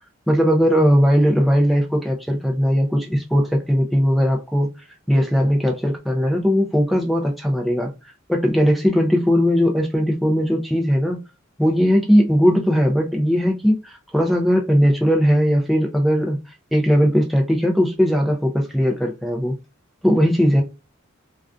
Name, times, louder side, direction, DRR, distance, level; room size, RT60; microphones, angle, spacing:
voice 1, 0.3-4.7 5.1-11.2 11.6-16.4 16.7-19.5 20.0-20.6, equal, ahead, 0.3 m, -18 dB
2.4 x 2.2 x 2.4 m
head